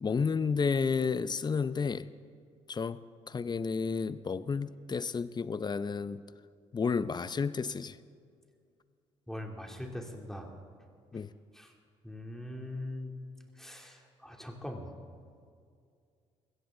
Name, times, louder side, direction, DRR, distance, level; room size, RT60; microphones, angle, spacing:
voice 1, 0.0-2.1 2.7-3.0 3.3-6.2 6.7-8.0 11.1-11.3, left 5 dB, 30° left, 15 dB, 0.7 m, -31 dB
voice 2, 9.3-10.5 11.5-11.7 12.0-13.1 13.6-14.9, left 1 dB, 5° left, 1 dB, 2.9 m, -41 dB
21.5 x 16.0 x 3.9 m, 2.3 s
supercardioid pair, 65°, 14 cm